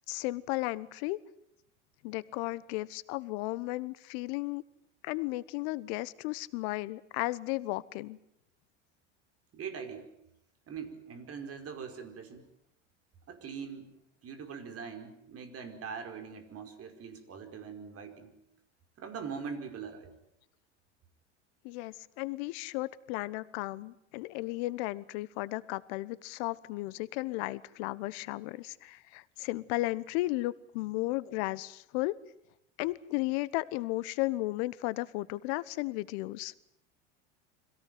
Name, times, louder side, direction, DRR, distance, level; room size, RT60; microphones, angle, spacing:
voice 1, 0.1-1.2 2.0-4.6 5.0-8.2 21.6-32.2 32.8-36.5, left 20 dB, 65° left, 18 dB, 1.2 m, -34 dB
voice 2, 9.5-10.1 10.7-12.5 13.3-13.9 14.2-18.4 19.0-20.1, right 6 dB, 40° right, 7 dB, 5.1 m, -42 dB
25.5 x 17.5 x 9.3 m, 0.77 s
hypercardioid pair, 85°, 35 cm